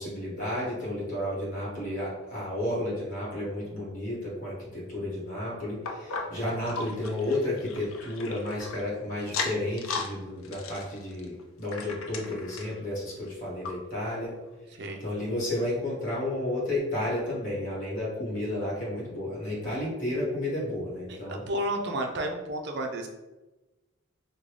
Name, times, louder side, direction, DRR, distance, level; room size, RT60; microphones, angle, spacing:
voice 1, 0.0-14.3 15.0-21.4, left 1 dB, 40° left, -6 dB, 1.5 m, -32 dB
sound 1, 5.9-8.8 9.2-10.1 10.4-12.8 13.3-13.4 13.6-13.7 14.4-14.5, left 4 dB, 85° left, 0.4 m, -36 dB
voice 2, 21.1-23.1, right 1 dB, 55° right, 3 dB, 0.5 m, -32 dB
3.8 x 2.2 x 3.2 m, 1.1 s
head